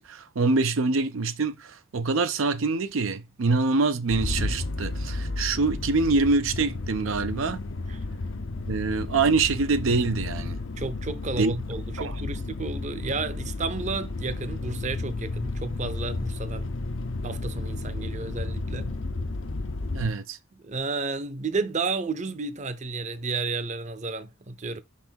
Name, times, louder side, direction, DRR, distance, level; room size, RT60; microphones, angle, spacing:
voice 1, 0.0-7.6 8.6-10.6 11.4-11.5 12.0-12.2 19.9-20.4, right 3 dB, 90° right, 0.6 m, -25 dB
sound 1, 4.1-20.1, left 2 dB, 75° left, 0.7 m, -32 dB
voice 2, 10.8-16.7 17.2-18.9 20.5-24.8, right 4 dB, 35° right, 0.6 m, -32 dB
5.8 x 4.6 x 4.5 m
head